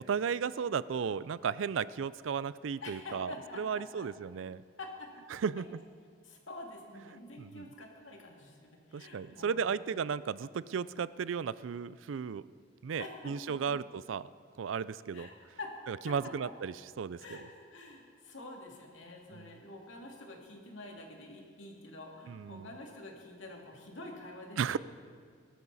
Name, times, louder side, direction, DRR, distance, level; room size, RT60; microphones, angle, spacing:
voice 1, 0.0-4.6 5.3-5.8 7.4-7.7 8.9-12.4 12.8-14.3 14.6-15.3 15.9-17.4 19.3-19.5 22.3-22.7 24.6-24.8, right 6 dB, 85° right, 18 dB, 0.4 m, -35 dB
voice 2, 2.8-4.1 4.8-5.1 6.2-10.0 13.0-13.8 15.1-15.3 15.6-15.8 16.1-16.5 17.2-24.8, left 2 dB, 80° left, 0 dB, 2.4 m, -47 dB
20.0 x 13.0 x 4.1 m, 2.1 s
head